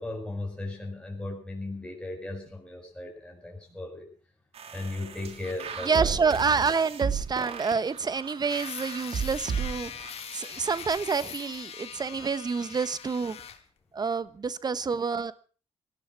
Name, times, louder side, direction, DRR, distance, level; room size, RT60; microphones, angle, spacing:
voice 1, 0.0-4.1 4.7-6.1, left 2 dB, 10° left, 6.2 m, -36 dB
sound 1, 4.5-11.0, right 6 dB, 60° right, 2.9 m, -35 dB
voice 2, 5.8-9.9 10.3-13.4 13.9-15.3, right 5 dB, 35° right, 1.2 m, -28 dB
sound 2, 8.5-13.6, left 8 dB, 60° left, 2.1 m, -41 dB
18.0 x 12.0 x 5.9 m
cardioid pair, 75°, 12 cm